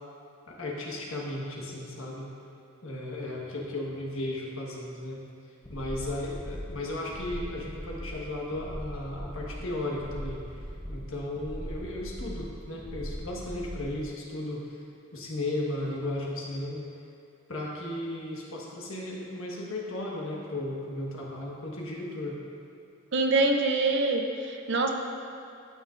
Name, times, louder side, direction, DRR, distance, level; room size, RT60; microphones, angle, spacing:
voice 1, 0.5-2.3 2.8-5.2 5.7-10.4 10.9-14.6 15.1-16.8 17.5-22.4, left 1 dB, 70° left, -3 dB, 1.4 m, -35 dB
sound 1, 5.6-14.1, equal, 5° left, 0.6 m, -40 dB
voice 2, 23.1-24.9, right 2 dB, 55° right, 3 dB, 0.6 m, -25 dB
12.0 x 6.4 x 2.5 m, 2.7 s
head